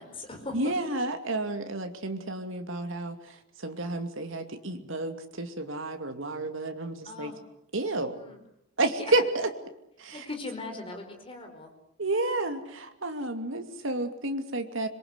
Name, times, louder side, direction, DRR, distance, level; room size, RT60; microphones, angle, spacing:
voice 1, 0.0-0.5 2.0-2.3 7.0-7.4 8.1-8.4 9.0-9.1 10.1-11.7, left 2 dB, 25° left, 4 dB, 4.9 m, -40 dB
voice 2, 0.5-7.3 7.7-8.2 8.8-9.5 10.0-10.3 12.0-14.9, right 2 dB, 65° right, 6 dB, 2.5 m, -31 dB
26.0 x 23.0 x 8.2 m, 0.79 s
head